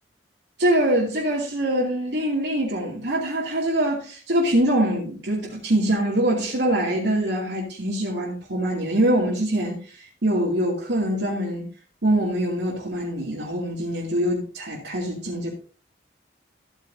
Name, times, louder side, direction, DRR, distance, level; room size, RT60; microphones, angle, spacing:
voice 1, 0.6-11.7 12.0-15.5, right 1 dB, 70° right, 2.6 m, -24 dB
14.5 x 8.8 x 2.7 m
head